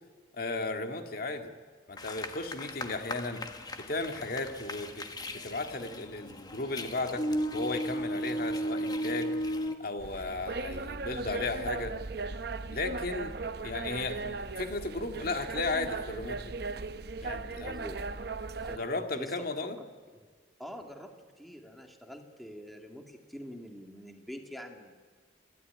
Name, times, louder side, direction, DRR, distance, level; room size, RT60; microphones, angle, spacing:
voice 1, 0.3-1.5 1.9-3.4 3.9-5.1 5.4-7.2 7.5-9.3 9.8-12.0 12.7-13.3 13.6-16.4 17.2-17.8 18.7-19.8, left 3 dB, 55° left, 6 dB, 2.0 m, -35 dB
sound 1, 2.0-9.8, equal, 20° left, 1.4 m, -35 dB
sound 2, 10.0-18.8, right 3 dB, 60° right, 0.8 m, -37 dB
voice 2, 17.6-18.1 18.6-18.9 19.1-19.3 19.6-19.7 20.6-21.1 21.4-24.9, equal, ahead, 3 dB, 2.2 m, -45 dB
29.0 x 13.0 x 9.8 m, 1.5 s
head